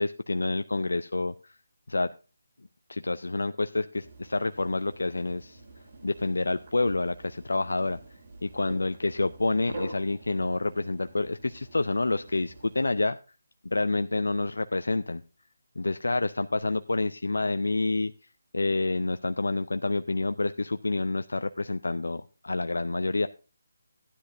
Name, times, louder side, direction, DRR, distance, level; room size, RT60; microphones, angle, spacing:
voice 1, 0.0-1.5 1.9-2.1 2.9-5.6 6.0-8.0 8.4-13.2 13.6-15.2 15.8-18.1 18.5-23.3, left 2 dB, 80° left, 10 dB, 0.4 m, -28 dB
sound 1, 4.0-12.9, right 2 dB, 50° right, 5.8 m, -46 dB
14.5 x 9.9 x 2.5 m, 0.33 s
figure-of-eight pair, 160°, 0 cm